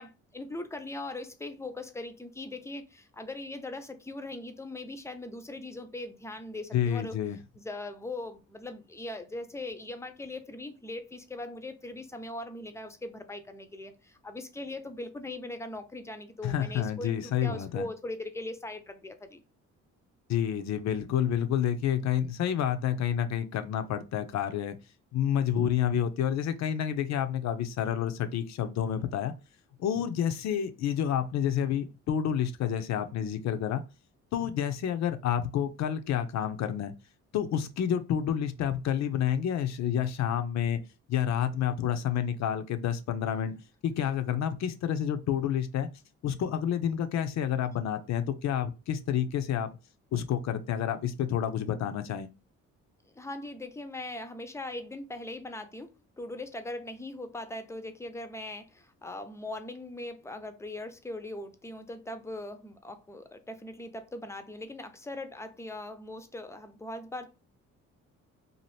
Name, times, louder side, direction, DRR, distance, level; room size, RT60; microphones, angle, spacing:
voice 1, 0.0-7.2 7.6-19.4 53.1-55.9 56.2-67.3, left 2 dB, 10° left, 0.5 m, -40 dB
voice 2, 6.7-7.4 16.4-17.9 20.3-24.8 25.1-29.3 29.8-33.8 34.3-36.9 37.3-40.8 41.1-43.5 43.8-45.9 46.2-49.7 50.1-52.3, left 9 dB, 65° left, 0.5 m, -29 dB
2.7 x 2.5 x 3.1 m
cardioid pair, 90°, 30 cm